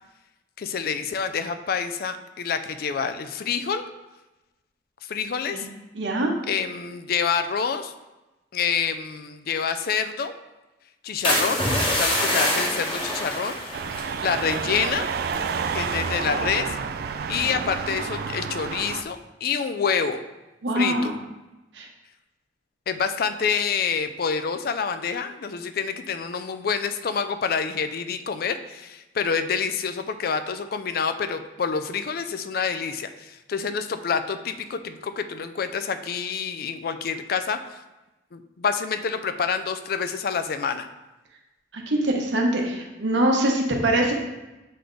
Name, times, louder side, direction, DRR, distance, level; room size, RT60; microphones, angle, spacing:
voice 1, 0.6-3.8 5.1-5.7 6.5-7.9 8.5-10.3 11.0-13.6 14.2-15.1 15.7-16.8 17.3-20.2 20.7-21.1 22.9-37.8 38.3-40.9, left 6 dB, 55° left, 9 dB, 0.4 m, -27 dB
voice 2, 5.9-6.3 20.6-21.1 21.7-21.9 41.7-44.1, right 1 dB, 80° right, 0 dB, 1.1 m, -23 dB
sound 1, 11.2-15.0 15.2-15.6 16.1-16.4, left 1 dB, 30° left, 1.1 m, -26 dB
sound 2, 13.7-19.0, right 5 dB, 55° right, 0.3 m, -29 dB
7.6 x 3.4 x 3.8 m, 1.0 s
head